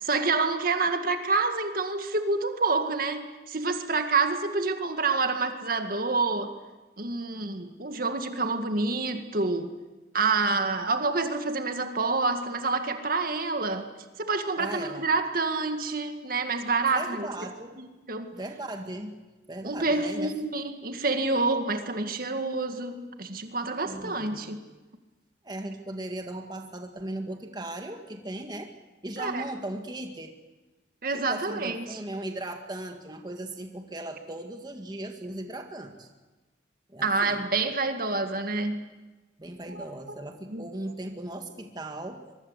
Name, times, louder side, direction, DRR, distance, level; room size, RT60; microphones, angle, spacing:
voice 1, 0.0-6.5 7.0-9.7 10.1-13.9 14.2-17.3 17.8-18.3 19.6-24.6 29.2-29.5 31.0-31.8 37.0-38.8 39.7-39.8 40.5-40.6, right 3 dB, 50° right, 7 dB, 2.0 m, -28 dB
voice 2, 14.6-15.1 16.9-17.8 18.3-19.1 19.5-20.3 23.9-24.5 25.4-28.7 29.0-30.3 31.1-36.1 36.9-37.4 39.4-42.2, right 1 dB, 25° right, 4 dB, 1.8 m, -37 dB
24.0 x 23.0 x 8.2 m, 1.2 s
head